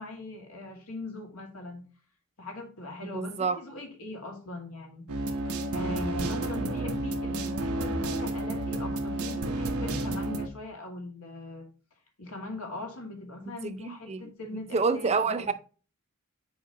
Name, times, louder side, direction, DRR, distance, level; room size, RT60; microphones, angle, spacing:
voice 1, 0.0-1.8 2.4-5.1 5.4-11.7 12.2-15.5, left 1 dB, 80° left, 2.2 m, -40 dB
voice 2, 3.1-3.6 13.5-14.2 14.7-15.5, right 4 dB, 30° right, 0.5 m, -28 dB
sound 1, 5.1-10.5, right 1 dB, 90° right, 1.0 m, -31 dB
7.1 x 5.1 x 3.0 m
head